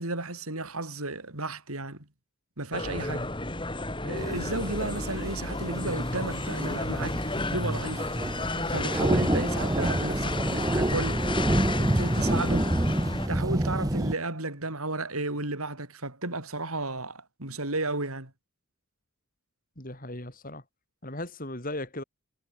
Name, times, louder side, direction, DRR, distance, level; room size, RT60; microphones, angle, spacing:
voice 1, 0.0-2.1 2.6-3.2 4.0-7.2 7.5-8.2 8.7-11.3 11.7-12.7 13.3-18.3, right 2 dB, 80° right, 5.8 m, -33 dB
sound 1, 2.7-13.3, left 2 dB, 20° left, 3.7 m, -33 dB
voice 2, 3.0-3.3 19.8-20.6 21.0-22.0, left 1 dB, 40° left, 6.0 m, -37 dB
sound 2, 4.2-14.1, right 1 dB, 15° right, 0.9 m, -28 dB
head